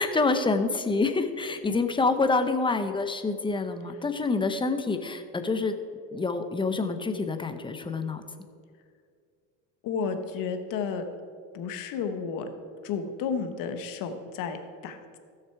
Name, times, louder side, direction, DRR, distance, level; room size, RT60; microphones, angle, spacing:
voice 1, 0.0-5.8 6.1-8.2, left 3 dB, 15° left, 8 dB, 0.8 m, -27 dB
voice 2, 9.8-11.0 11.5-12.5 12.8-15.2, left 6 dB, 65° left, 7 dB, 1.3 m, -32 dB
15.0 x 6.6 x 4.7 m, 2.2 s
supercardioid pair, 115°, 36 cm